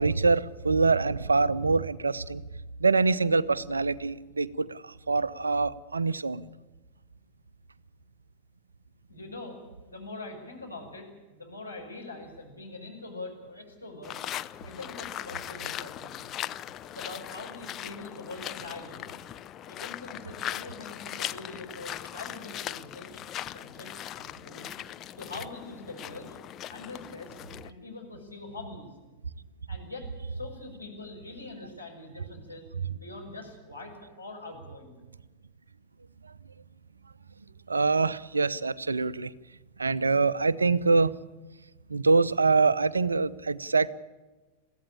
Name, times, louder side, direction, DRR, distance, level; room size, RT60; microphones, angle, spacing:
voice 1, 0.0-2.4 2.8-6.4 37.7-39.3 39.8-41.1 41.9-43.9, right 4 dB, 75° right, 18 dB, 0.7 m, -25 dB
voice 2, 9.1-9.6 9.8-14.2 14.6-16.2 16.8-19.2 19.7-23.1 23.5-24.7 25.2-26.3 26.7-28.9 29.7-32.7 32.9-35.0, left 2 dB, 85° left, -1 dB, 5.9 m, -43 dB
sound 1, 14.0-27.7, left 12 dB, 30° left, 0.6 m, -39 dB
23.0 x 15.5 x 8.7 m, 1.2 s
figure-of-eight pair, 90°, 0 cm